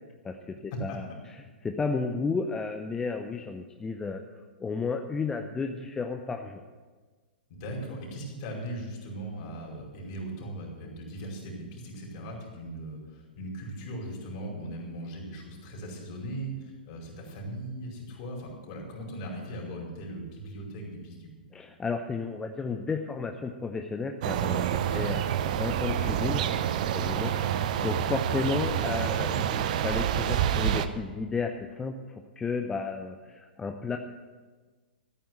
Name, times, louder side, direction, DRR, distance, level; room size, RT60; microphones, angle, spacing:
voice 1, 0.2-4.2 4.6-6.6 21.5-26.5 26.9-32.0 32.4-34.0, left 4 dB, 10° left, 5 dB, 0.7 m, -33 dB
voice 2, 7.5-21.3, right 1 dB, 40° left, -1 dB, 5.1 m, -39 dB
sound 1, 24.2-30.9, right 10 dB, 50° right, 0.9 m, -28 dB
14.5 x 9.1 x 7.8 m, 1.4 s
figure-of-eight pair, 110°, 5 cm